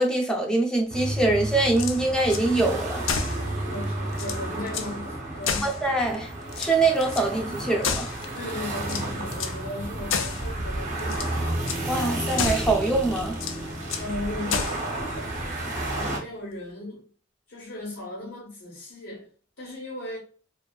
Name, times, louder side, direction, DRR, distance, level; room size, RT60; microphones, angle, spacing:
voice 1, 0.0-3.0 5.6-6.3 6.6-8.1 11.9-13.3, right 2 dB, 5° left, 0.5 m, -24 dB
sound 1, 0.9-16.2, right 1 dB, 40° right, 0.7 m, -32 dB
sound 2, 1.7-2.5 3.0-3.4 3.8-3.9 4.1-4.9 5.4-6.2 6.5-7.3 7.8-8.4 8.8-9.6 10.1-10.5 11.0-11.3 11.7-11.9 12.4-12.8 13.3-14.1 14.5-14.9, left 6 dB, 70° left, 0.4 m, -30 dB
voice 2, 3.6-5.7 8.3-11.6 14.0-15.3 15.7-17.0 17.5-19.3 19.6-20.2, left 1 dB, 85° left, 1.1 m, -36 dB
2.5 x 2.3 x 2.2 m
head